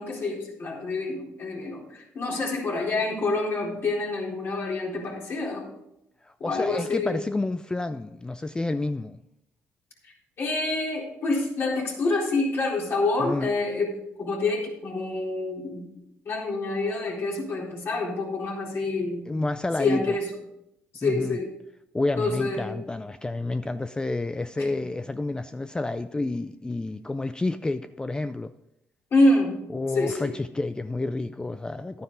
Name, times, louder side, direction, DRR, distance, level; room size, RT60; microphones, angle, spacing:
voice 1, 0.0-5.7 6.4-7.1 10.0-15.8 16.3-19.2 19.8-20.3 20.9-21.5 22.2-22.7 24.6-24.7 29.1-29.5 29.9-30.3, left 2 dB, 50° left, 4.0 m, -27 dB
voice 2, 6.2-9.2 13.2-13.5 19.3-20.2 21.0-21.4 21.9-28.5 29.7-32.0, left 2 dB, 15° left, 0.4 m, -29 dB
11.0 x 9.6 x 3.8 m
supercardioid pair, 75°, 5 cm